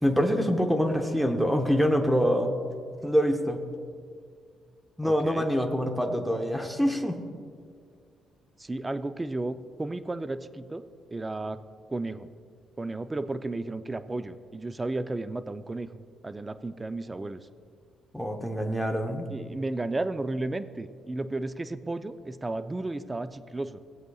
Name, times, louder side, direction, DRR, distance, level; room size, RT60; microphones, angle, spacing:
voice 1, 0.0-2.6 3.0-3.6 5.0-7.2 18.1-19.3, equal, 5° right, 4 dB, 0.9 m, -25 dB
voice 2, 5.0-5.5 8.6-10.8 11.1-11.6 11.9-12.3 12.8-17.4 19.3-23.8, right 2 dB, 20° right, 11 dB, 0.5 m, -33 dB
18.0 x 8.0 x 2.3 m, 2.1 s
cardioid pair, 90°, 0 cm